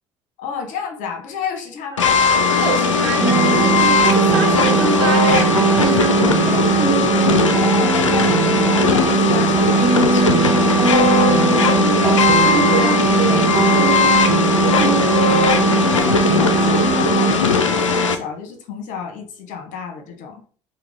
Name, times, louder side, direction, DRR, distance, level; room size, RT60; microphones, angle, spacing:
voice 1, 0.4-2.3 7.3-12.8 14.7-15.0 15.9-20.4, left 7 dB, 55° left, 1.0 m, -31 dB
sound 1, 2.0-18.2, left 5 dB, 85° left, 0.4 m, -18 dB
voice 2, 2.6-3.8 4.1-6.8 12.0-14.1 14.6-14.9 15.6-16.0, right 5 dB, 65° right, 1.1 m, -26 dB
sound 2, 3.2-17.3, right 6 dB, 30° right, 0.6 m, -19 dB
4.6 x 2.2 x 3.5 m
figure-of-eight pair, 55°, 16 cm